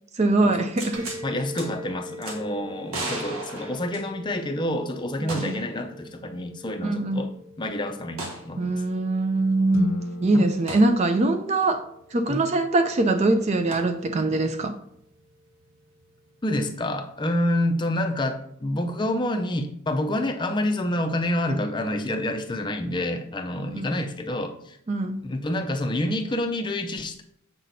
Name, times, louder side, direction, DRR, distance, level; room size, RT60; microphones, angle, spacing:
voice 1, 0.1-1.1 5.3-5.6 6.8-7.3 8.6-14.8 23.6-24.0 24.9-25.3, right 2 dB, 30° right, 9 dB, 0.4 m, -23 dB
sound 1, 0.8-1.2 1.6-1.7 2.2-2.4 2.9-4.4 5.3-5.7 6.0-6.1 8.2-8.4 10.7-10.9 13.7-13.8, right 2 dB, 85° right, 1.4 m, -34 dB
sound 2, 0.9-18.3, left 1 dB, 60° right, 0.9 m, -46 dB
voice 2, 1.2-7.3 7.6-8.8 10.3-10.5 12.3-12.4 16.4-24.8 25.2-27.2, left 1 dB, 20° left, 5 dB, 0.5 m, -28 dB
sound 3, 9.7-12.1, left 2 dB, 75° left, 0.6 m, -35 dB
7.2 x 5.9 x 2.7 m, 0.71 s
head